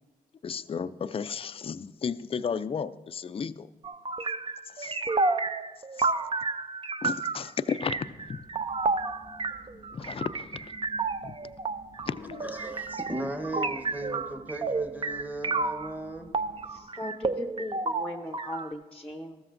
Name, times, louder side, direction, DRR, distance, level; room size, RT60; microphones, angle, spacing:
voice 1, 0.4-3.7 4.8-5.0 6.0-6.1 7.0-8.4 9.9-10.5 11.2-11.3 12.1-12.5, left 6 dB, 35° left, 13 dB, 0.4 m, -33 dB
sound 1, 3.8-15.9 16.3-18.7, right 3 dB, 30° right, 0.6 m, -31 dB
sound 2, 7.9-16.8, equal, 50° right, 3.2 m, -53 dB
voice 2, 12.4-16.3, right 1 dB, 10° right, 6 dB, 1.2 m, -37 dB
voice 3, 16.7-19.4, left 1 dB, 5° left, 5 dB, 0.8 m, -38 dB
14.0 x 13.0 x 2.6 m, 1.2 s
supercardioid pair, 45°, 17 cm